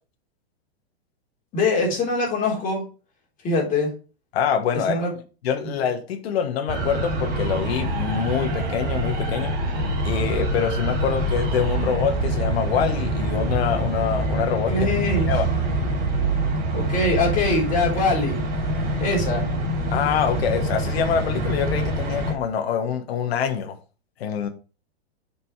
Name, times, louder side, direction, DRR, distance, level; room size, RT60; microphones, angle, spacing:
voice 1, 1.5-2.8 3.4-3.9 4.9-5.1 5.6-5.7 14.7-15.3 16.7-18.4 19.0-19.5, left 2 dB, 25° left, 3.5 m, -23 dB
voice 2, 4.3-5.0 5.4-9.5 10.0-14.7 15.3-15.5 19.9-23.8 24.2-24.5, left 7 dB, 70° left, 1.4 m, -25 dB
sound 1, 6.7-22.3, right 1 dB, 30° right, 3.1 m, -25 dB
6.9 x 5.4 x 4.6 m
hypercardioid pair, 140°, 31 cm